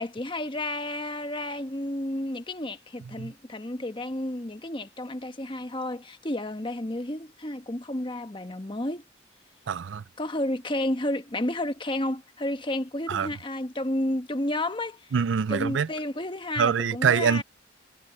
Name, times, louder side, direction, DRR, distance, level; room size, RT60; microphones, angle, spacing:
voice 1, 0.0-9.0 10.2-15.1 15.5-17.4, left 1 dB, 25° left, 1.2 m, -31 dB
voice 2, 9.7-10.0 13.1-13.3 15.1-15.9 16.6-17.4, right 6 dB, 80° right, 0.4 m, -24 dB
head